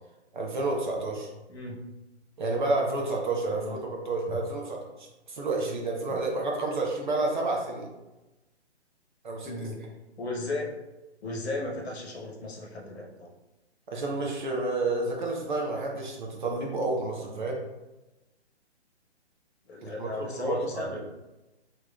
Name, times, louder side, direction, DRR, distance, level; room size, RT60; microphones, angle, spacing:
voice 1, 0.3-1.3 2.4-7.9 9.2-9.7 13.9-17.6 19.8-21.0, right 2 dB, 45° right, -1 dB, 0.8 m, -30 dB
voice 2, 1.5-1.8 3.4-3.8 4.3-4.4 6.1-6.3 9.4-9.8 10.2-10.7 11.2-13.3 19.7-21.0, left 2 dB, 65° left, 0 dB, 1.1 m, -35 dB
4.6 x 3.0 x 2.3 m, 1.1 s
hypercardioid pair, 165°, 34 cm